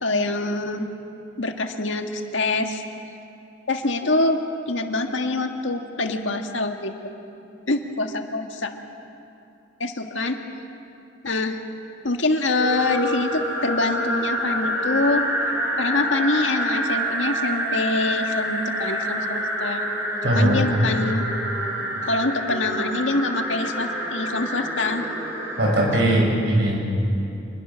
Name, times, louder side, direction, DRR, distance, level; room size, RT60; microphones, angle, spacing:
voice 1, 0.0-0.9 1.4-2.8 3.7-4.4 4.7-6.9 7.7-8.7 9.8-10.4 11.2-11.6 12.0-15.2 15.8-19.8 20.2-21.3 22.0-25.1 25.9-26.0, left 2 dB, 85° left, 5 dB, 1.7 m, -25 dB
sound 1, 12.6-25.9, equal, 15° right, 6.0 m, -27 dB
voice 2, 20.2-20.6 25.6-26.8, right 1 dB, 65° right, -1 dB, 6.8 m, -19 dB
27.0 x 21.5 x 6.3 m, 2.7 s
head